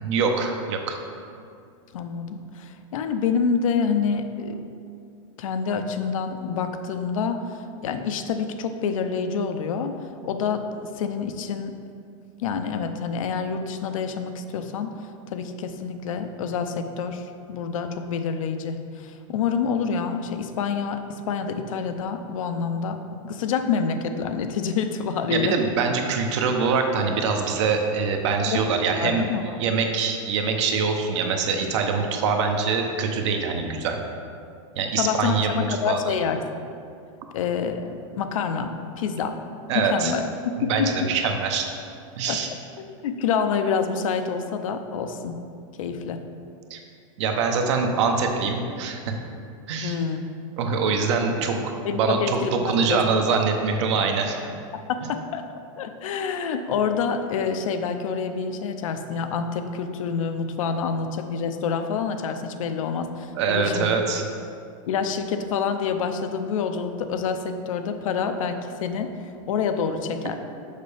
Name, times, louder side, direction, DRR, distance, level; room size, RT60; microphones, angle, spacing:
voice 1, 0.0-1.0 25.3-29.2 29.6-34.0 34.8-36.1 39.7-40.1 40.7-41.7 42.2-42.5 46.7-46.8 47.2-49.1 49.7-50.0 50.6-54.4 63.3-64.2, right 5 dB, 60° right, 4 dB, 0.8 m, -24 dB
voice 2, 1.9-4.7 5.4-9.9 10.2-11.8 12.4-14.9 15.3-25.6 28.5-28.6 29.0-29.6 35.0-36.4 37.3-39.4 39.7-40.3 40.5-40.9 42.3-42.4 42.8-45.4 45.8-46.2 49.8-50.2 51.8-53.0 54.9-55.4 55.8-63.9 64.9-69.1 69.5-70.4, left 6 dB, 80° left, 7 dB, 0.6 m, -27 dB
6.6 x 5.3 x 3.4 m, 2.4 s
supercardioid pair, 155°, 17 cm